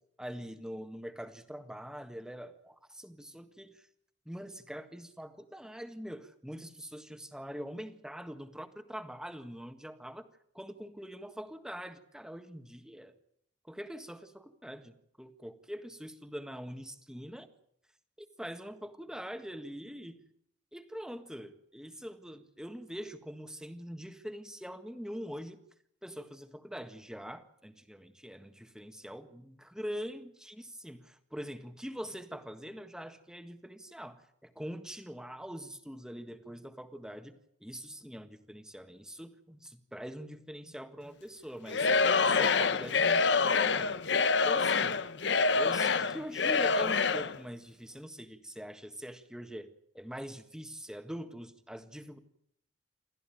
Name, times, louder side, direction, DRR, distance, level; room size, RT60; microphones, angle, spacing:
voice 1, 0.2-3.9 4.2-10.3 10.5-13.1 13.7-17.5 18.2-20.3 20.7-25.6 26.0-41.9 42.2-44.0 44.3-45.0 45.5-52.2, equal, 5° right, 8 dB, 1.6 m, -43 dB
Singing / Crowd, 41.7-47.4, left 4 dB, 70° left, 0.9 m, -26 dB
28.5 x 14.0 x 9.2 m, 0.72 s
head